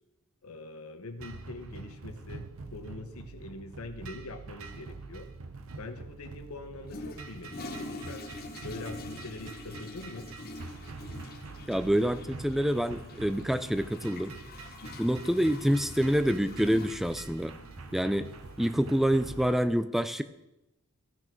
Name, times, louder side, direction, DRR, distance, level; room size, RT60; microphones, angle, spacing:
voice 1, 0.4-5.3 5.8-8.3 8.6-10.3, left 2 dB, 80° left, 7 dB, 0.9 m, -43 dB
sound 1, 1.2-19.6, right 3 dB, 70° right, 0.7 m, -45 dB
Toilet flush, 6.9-19.7, left 2 dB, 45° left, 1.0 m, -45 dB
voice 2, 11.7-14.3 15.0-17.5 17.9-18.3 18.6-20.2, equal, ahead, 12 dB, 0.4 m, -27 dB
14.0 x 6.2 x 4.5 m, 0.91 s
head